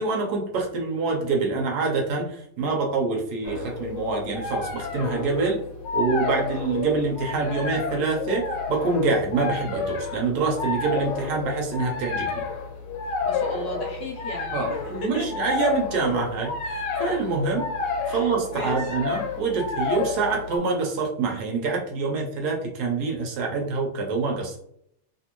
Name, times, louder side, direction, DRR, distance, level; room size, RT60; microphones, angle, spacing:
voice 1, 0.0-5.6 5.9-12.4 14.5-17.7 18.1-24.6, right 4 dB, 70° right, 0 dB, 0.9 m, -26 dB
sound 1, 3.4-20.6, left 4 dB, 85° left, 1.7 m, -30 dB
voice 2, 13.2-15.3 18.0-18.8, equal, 65° left, -2 dB, 1.3 m, -35 dB
3.3 x 2.7 x 2.9 m, 0.71 s
omnidirectional pair, 2.4 m